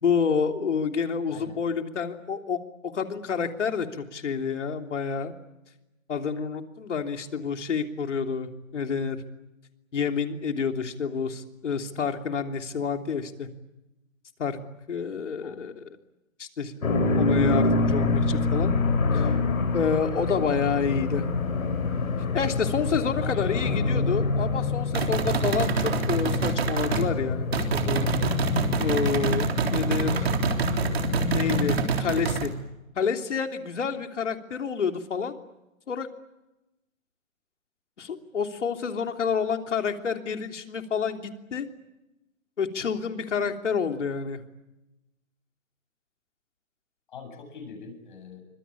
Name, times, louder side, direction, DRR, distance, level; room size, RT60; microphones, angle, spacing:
voice 1, 0.0-5.3 6.1-9.2 9.9-13.5 14.4-14.6 14.9-15.8 16.4-18.7 19.1-19.3 19.7-21.2 22.3-28.0 28.8-29.5 29.7-30.3 31.3-32.5 32.9-35.4 35.9-36.1 38.0-41.7 42.6-44.4, left 6 dB, 60° left, 6 dB, 3.3 m, -29 dB
voice 2, 1.3-1.6 15.4-15.7 23.2-24.2 43.4-43.5 47.1-48.4, left 4 dB, 35° left, 6 dB, 7.7 m, -43 dB
sound 1, 16.8-31.7, left 3 dB, 90° left, 7.1 m, -27 dB
sound 2, 24.9-27.1 27.5-32.5, right 5 dB, 50° right, 3.7 m, -27 dB
25.5 x 25.5 x 8.6 m, 0.96 s
hypercardioid pair, 180°, 40 cm